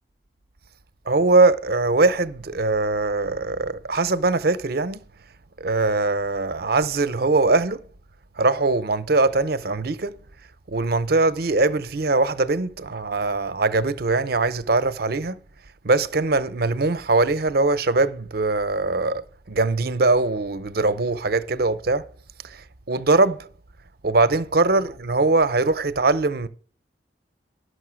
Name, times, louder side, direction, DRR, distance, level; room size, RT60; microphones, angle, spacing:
voice 1, 1.1-5.0 5.6-7.8 8.4-10.2 10.7-15.4 15.8-22.0 22.4-23.5 24.0-26.5, right 3 dB, 55° right, 0.7 m, -21 dB
11.5 x 6.4 x 6.3 m
head